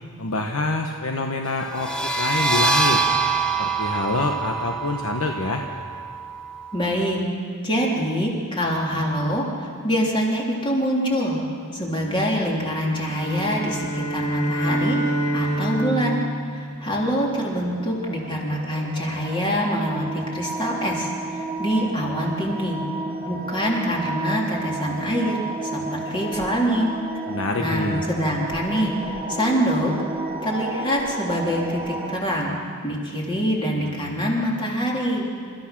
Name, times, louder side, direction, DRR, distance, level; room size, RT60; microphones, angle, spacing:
voice 1, 0.2-3.0 3.6-5.6 27.3-28.0, left 2 dB, 90° left, 2 dB, 1.2 m, -26 dB
sound 1, 1.7-7.1, right 4 dB, 5° left, 1.1 m, -25 dB
voice 2, 6.7-7.2 7.6-11.4 11.7-15.0 15.3-16.2 16.5-22.8 23.2-26.9 27.6-29.9 30.4-32.5 32.8-35.2, equal, 25° left, -2 dB, 3.5 m, -25 dB
sound 2, 13.1-17.5, right 1 dB, 50° left, 4.7 m, -27 dB
sound 3, 16.8-32.2, right 2 dB, 25° right, 1.5 m, -32 dB
29.5 x 14.5 x 6.1 m, 2.2 s
head